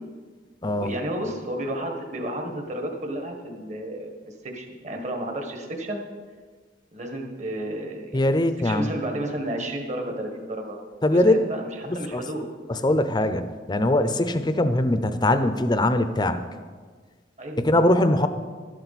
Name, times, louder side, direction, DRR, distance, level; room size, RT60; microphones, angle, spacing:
voice 1, 0.7-4.1 4.4-6.0 6.9-8.3 8.6-10.8 11.1-12.4 17.4-17.6, right 1 dB, 40° right, 3 dB, 1.5 m, -32 dB
voice 2, 8.1-8.9 11.0-11.4 11.9-12.2 12.7-16.4 17.6-18.3, left 1 dB, 25° left, 10 dB, 0.6 m, -21 dB
12.0 x 11.5 x 4.2 m, 1.5 s
head